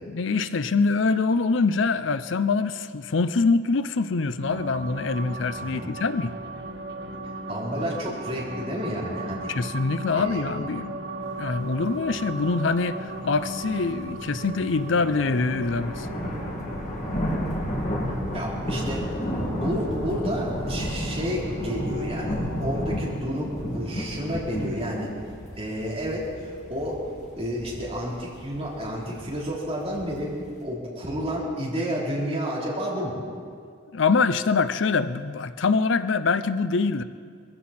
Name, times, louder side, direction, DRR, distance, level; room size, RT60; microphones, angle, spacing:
voice 1, 0.1-6.3 9.5-11.1 11.4-16.1 33.9-37.0, left 4 dB, 75° left, 12 dB, 0.6 m, -24 dB
sound 1, 4.4-23.2, right 1 dB, 60° right, 1.2 m, -37 dB
voice 2, 5.6-5.9 7.5-9.5 10.1-10.4 18.3-25.1 25.5-27.0 27.4-30.3 30.6-33.2, equal, 30° right, -6 dB, 3.5 m, -31 dB
sound 2, 14.7-30.6, equal, 35° left, 2.1 m, -32 dB
sound 3, 19.9-20.3 20.7-21.8 22.1-24.1 24.5-24.9 25.2-25.7 26.0-26.4 26.8-27.3 27.5-28.0 28.4-28.7 29.1-29.7 29.9-30.3 31.0-31.1 31.3-31.4, equal, ahead, 3.9 m, -48 dB
21.0 x 15.5 x 4.3 m, 2.2 s
head